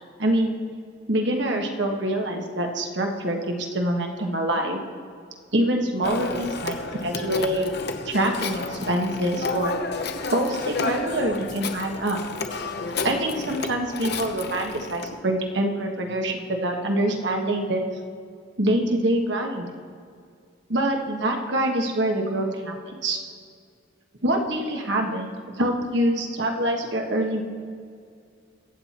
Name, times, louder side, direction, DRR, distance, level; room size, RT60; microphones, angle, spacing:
voice 1, 0.2-0.5 1.1-4.8 5.5-6.7 7.0-9.7 10.3-12.2 13.0-17.8 18.6-19.7 20.7-23.2 24.2-25.3 25.6-27.4, right 1 dB, 70° right, 2 dB, 1.5 m, -25 dB
Telephone, 6.0-15.1, left 4 dB, 60° left, 0.9 m, -31 dB
23.5 x 7.8 x 4.4 m, 2.2 s
head